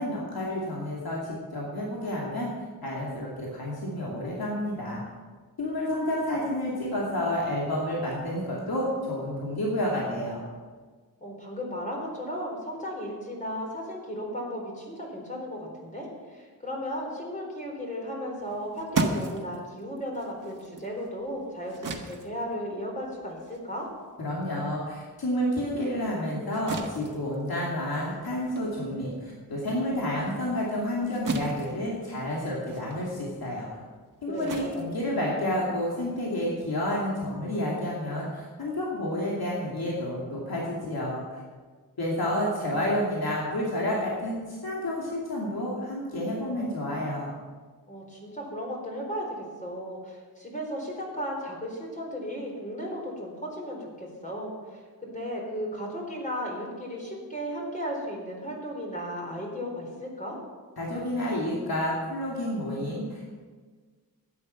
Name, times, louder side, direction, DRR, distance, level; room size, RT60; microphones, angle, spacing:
voice 1, 0.0-2.5 2.8-5.0 5.6-10.4 24.2-33.7 34.2-41.4 42.0-47.3 60.8-63.3, left 1 dB, 70° left, -4 dB, 2.7 m, -30 dB
voice 2, 11.2-23.9 34.3-34.8 47.9-60.4, equal, 20° left, -1 dB, 4.2 m, -35 dB
sound 1, 18.4-25.2 25.6-35.8, right 3 dB, 55° right, 1.5 m, -37 dB
13.0 x 10.0 x 5.8 m, 1.5 s
wide cardioid pair, 115°, 37 cm